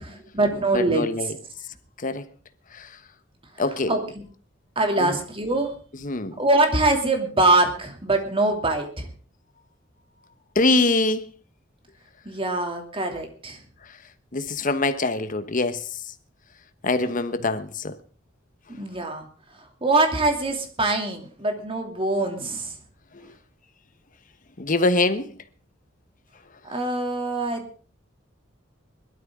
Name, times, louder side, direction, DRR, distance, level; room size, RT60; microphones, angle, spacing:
voice 1, 0.0-1.0 3.6-4.2 4.8-5.8 6.4-9.1 12.2-13.6 18.7-19.3 19.5-22.7 26.6-27.8, right 2 dB, 30° right, 2.8 m, -24 dB
voice 2, 0.7-1.3 2.0-2.2 2.7-3.0 3.6-3.9 5.0-5.1 6.0-6.4 10.5-11.3 14.3-16.0 16.8-17.9 24.6-25.3, left 2 dB, 45° left, 1.1 m, -24 dB
21.5 x 12.5 x 3.7 m
head